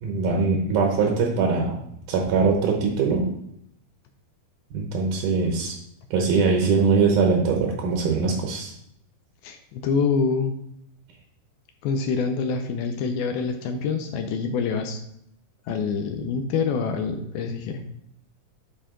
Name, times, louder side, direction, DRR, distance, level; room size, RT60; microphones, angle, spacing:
voice 1, 0.0-1.8 2.1-3.3 4.7-5.7 6.1-8.7, right 4 dB, 70° right, 1 dB, 2.0 m, -22 dB
voice 2, 9.4-10.6 11.8-15.0 15.7-17.8, left 5 dB, 80° left, 6 dB, 2.3 m, -26 dB
9.9 x 4.3 x 3.7 m, 0.76 s
omnidirectional pair, 4.7 m